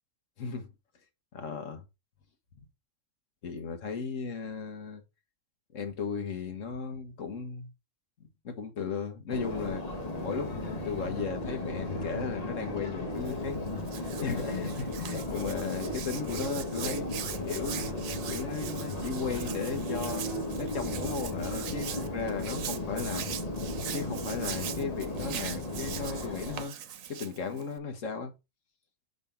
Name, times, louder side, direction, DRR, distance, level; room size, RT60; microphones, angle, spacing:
voice 1, 0.4-0.7 1.3-1.8 3.4-5.0 5.7-7.7 8.4-9.9 10.2-17.1 17.5-18.0 18.3-23.3 23.9-26.8 27.1-28.3, left 5 dB, 70° left, 1.7 m, -36 dB
Subway metro underground, 9.3-26.6, left 1 dB, 30° left, 1.1 m, -35 dB
Hands, 13.1-27.8, right 9 dB, 90° right, 1.2 m, -42 dB
6.1 x 5.5 x 4.4 m
omnidirectional pair, 1.4 m